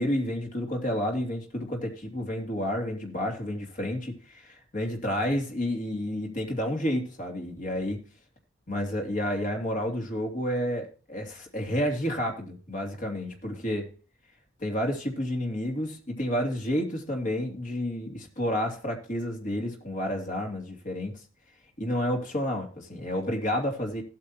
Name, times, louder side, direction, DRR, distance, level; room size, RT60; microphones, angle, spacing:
voice 1, 0.0-8.0 8.7-13.9 14.6-21.1 21.8-24.0, equal, 40° left, 2 dB, 2.8 m, -30 dB
16.0 x 8.6 x 2.9 m, 0.36 s
head